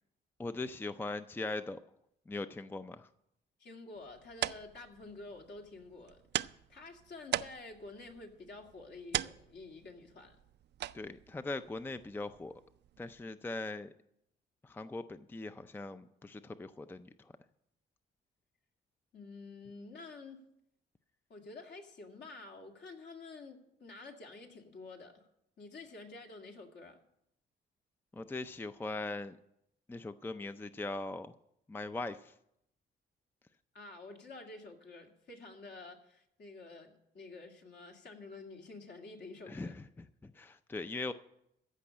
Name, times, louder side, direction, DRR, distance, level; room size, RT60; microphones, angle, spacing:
voice 1, 0.4-1.8 2.3-3.1 10.9-12.5 13.0-13.9 14.6-17.3 28.1-29.4 29.9-31.3 31.7-32.3 39.5-41.1, left 2 dB, 10° left, 11 dB, 0.5 m, -40 dB
voice 2, 3.6-10.4 19.1-20.4 21.3-25.3 25.6-27.0 33.7-39.7, left 3 dB, 60° left, 2 dB, 2.3 m, -49 dB
sound 1, 3.9-13.2, right 12 dB, 60° right, 0.4 m, -42 dB
14.5 x 5.4 x 8.5 m, 0.78 s
cardioid pair, 90°, 20 cm